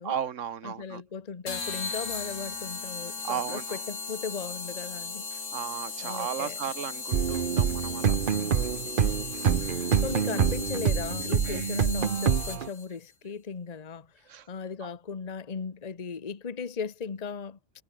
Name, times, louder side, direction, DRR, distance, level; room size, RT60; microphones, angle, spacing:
voice 1, 0.0-1.0 3.2-3.8 5.3-8.3 9.4-9.5 11.2-11.6 14.3-14.5 14.8-14.9, right 8 dB, 75° right, 1.4 m, -35 dB
voice 2, 0.6-5.2 6.0-6.6 9.4-14.1 14.5-17.6, left 6 dB, 35° left, 1.1 m, -37 dB
sound 1, 1.5-12.9, left 4 dB, 80° left, 2.7 m, -37 dB
sound 2, 7.1-12.7, right 7 dB, 50° right, 0.9 m, -26 dB
omnidirectional pair, 1.3 m